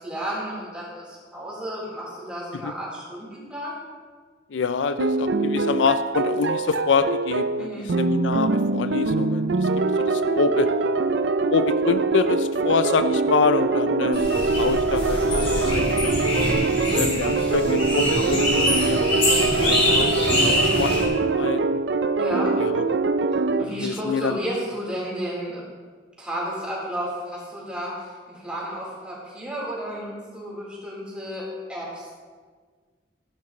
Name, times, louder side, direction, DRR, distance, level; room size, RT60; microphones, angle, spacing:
voice 1, 0.0-3.8 7.6-7.9 22.2-22.5 23.6-25.7 26.2-32.1, equal, 5° right, -7 dB, 4.1 m, -32 dB
voice 2, 4.5-7.7 8.0-9.7 10.1-10.7 11.5-16.3 16.9-21.8 22.6-22.8 23.6-24.4, left 5 dB, 80° left, 11 dB, 0.4 m, -26 dB
sound 1, 5.0-23.6, right 3 dB, 65° right, 0.5 m, -23 dB
sound 2, 14.1-21.0, left 1 dB, 30° left, 2.6 m, -24 dB
14.5 x 11.0 x 3.2 m, 1.5 s
head